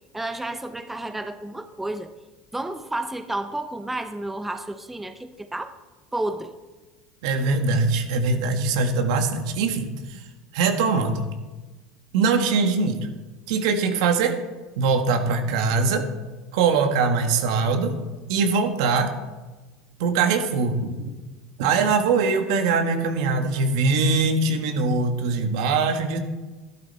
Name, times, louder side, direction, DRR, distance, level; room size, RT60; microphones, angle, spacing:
voice 1, 0.1-2.1 2.5-5.7 6.1-6.5, right 2 dB, 5° right, 9 dB, 0.7 m, -31 dB
voice 2, 7.2-10.2 10.5-11.2 12.1-13.0 13.5-14.4 14.7-16.1 16.5-18.0 18.3-19.1 20.0-20.9 21.6-26.2, right 4 dB, 80° right, 6 dB, 1.6 m, -22 dB
12.0 x 12.0 x 4.3 m, 1.2 s
supercardioid pair, 115°, 3 cm